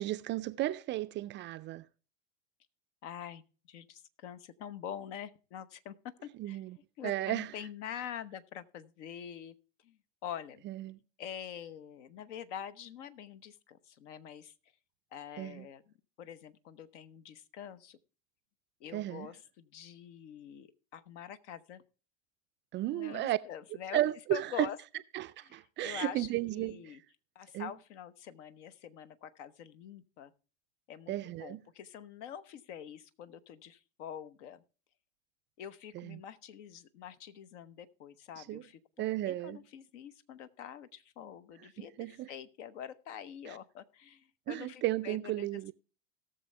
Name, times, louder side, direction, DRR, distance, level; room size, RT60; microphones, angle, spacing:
voice 1, 0.0-1.8 6.4-6.8 7.0-7.5 10.7-11.0 15.4-15.7 18.9-19.3 22.7-23.4 23.9-24.7 25.1-26.9 27.5-27.7 31.1-31.6 35.9-36.2 38.5-38.6 39.0-39.6 41.8-42.3 43.5-43.6 44.5-45.7, right 15 dB, 30° right, 0.4 m, -34 dB
voice 2, 3.0-9.5 9.8-10.6 11.2-14.5 15.1-18.0 18.8-21.8 22.9-24.0 24.3-24.8 25.4-27.0 27.3-30.3 30.9-34.6 35.6-45.7, left 9 dB, 65° left, 1.0 m, -46 dB
17.5 x 6.8 x 3.3 m
hypercardioid pair, 95°, 38 cm